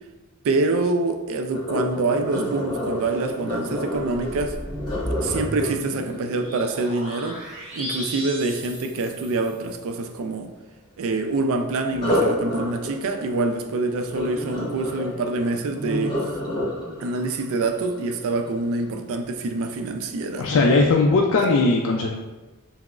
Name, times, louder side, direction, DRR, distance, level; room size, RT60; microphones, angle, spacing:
voice 1, 0.4-4.6 5.2-7.4 7.7-10.5 11.0-16.2 17.0-20.5, right 3 dB, 65° right, 0.4 m, -26 dB
Sink (filling or washing), 1.5-7.5 11.9-18.9 19.4-19.7 20.2-20.3, left 1 dB, 20° left, 1.0 m, -29 dB
sound 1, 4.0-9.8, equal, 25° right, 1.2 m, -35 dB
voice 2, 20.4-22.1, left 3 dB, 65° left, 0.3 m, -19 dB
5.7 x 2.0 x 2.4 m
head